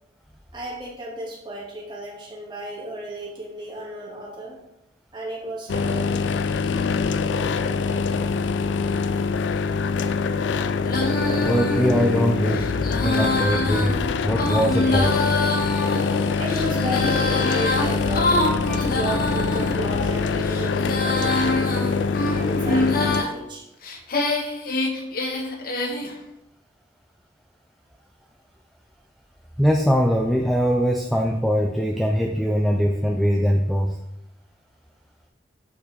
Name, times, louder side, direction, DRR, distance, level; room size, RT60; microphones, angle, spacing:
voice 1, 0.5-4.6 5.1-6.2 16.4-18.3 18.7-22.0 22.3-23.7, right 1 dB, 25° right, -4 dB, 2.1 m, -33 dB
sound 1, 5.7-23.2, left 5 dB, 75° left, 0.4 m, -24 dB
Female singing, 10.8-19.8 20.3-23.3 23.8-26.1, left 2 dB, 50° left, 0.9 m, -26 dB
voice 2, 11.4-12.7 13.0-14.0 14.2-15.2 29.6-34.0, equal, ahead, 1 dB, 0.4 m, -21 dB
8.2 x 4.5 x 4.3 m, 0.86 s
head